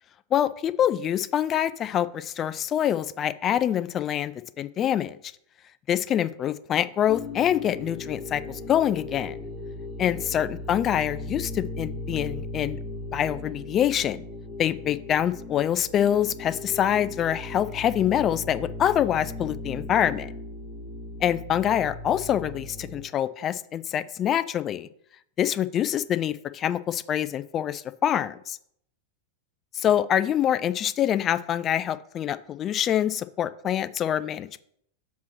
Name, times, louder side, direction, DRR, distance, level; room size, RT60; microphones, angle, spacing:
voice 1, 0.3-5.2 5.9-9.4 10.0-12.8 13.1-14.2 14.6-20.3 21.2-24.9 25.4-28.6 29.7-34.6, left 10 dB, 30° left, 15 dB, 0.3 m, -25 dB
sound 1, 7.1-23.0, left 2 dB, 15° left, 1.9 m, -37 dB
7.3 x 2.9 x 5.9 m, 0.69 s
figure-of-eight pair, 90°, 0 cm